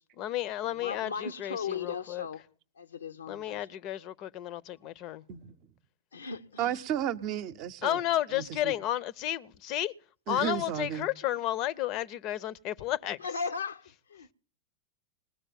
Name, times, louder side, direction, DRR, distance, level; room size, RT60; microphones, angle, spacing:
voice 1, 0.2-2.3 3.3-5.2 7.8-9.9 10.3-13.2, left 13 dB, 40° left, 0.7 m, -32 dB
voice 2, 0.7-2.4 2.8-3.6 6.1-6.8 13.2-14.3, left 5 dB, 70° left, 0.8 m, -37 dB
voice 3, 6.6-8.0 8.3-8.7 10.3-11.1, right 10 dB, 40° right, 0.7 m, -33 dB
20.0 x 6.6 x 7.5 m
figure-of-eight pair, 90°, 0 cm